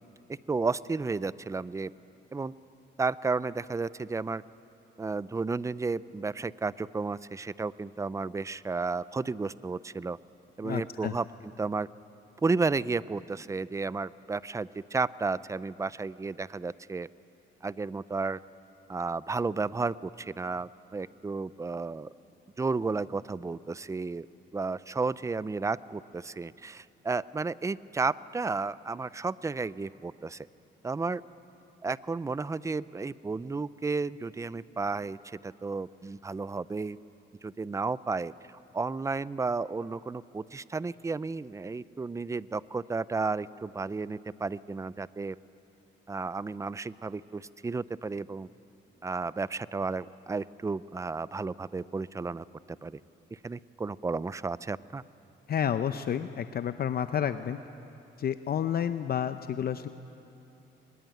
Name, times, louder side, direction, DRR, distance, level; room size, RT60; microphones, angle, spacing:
voice 1, 0.5-1.9 2.3-2.5 3.0-4.4 5.0-10.2 10.6-11.9 12.4-17.1 17.6-18.4 18.9-22.1 22.6-24.3 24.5-30.5 30.8-31.2 31.8-37.0 37.4-38.3 38.7-45.4 46.1-48.5 49.0-53.0 53.3-55.0, right 4 dB, 15° right, 18 dB, 0.5 m, -32 dB
voice 2, 10.6-11.1 55.5-57.6 58.2-59.9, left 9 dB, 50° left, 10 dB, 0.7 m, -30 dB
23.5 x 20.5 x 9.2 m, 2.8 s
cardioid pair, 90°, 20 cm